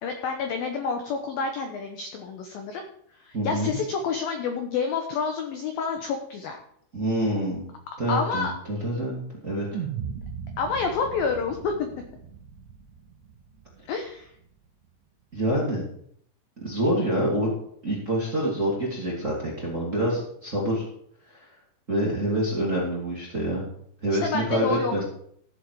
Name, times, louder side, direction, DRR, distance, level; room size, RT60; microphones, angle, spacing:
voice 1, 0.0-2.8 3.2-6.6 8.1-8.5 10.6-11.9 13.9-14.3 24.2-25.0, left 5 dB, 75° left, 4 dB, 2.1 m, -28 dB
voice 2, 3.3-3.8 6.9-7.7 8.0-9.8 15.3-15.8 16.6-17.5 17.8-20.8 21.9-23.6 24.0-25.0, right 1 dB, 25° right, -4 dB, 1.9 m, -26 dB
sound 1, 9.7-14.1, right 7 dB, 75° right, 3.2 m, -38 dB
15.0 x 7.1 x 4.8 m, 0.67 s
omnidirectional pair, 5.6 m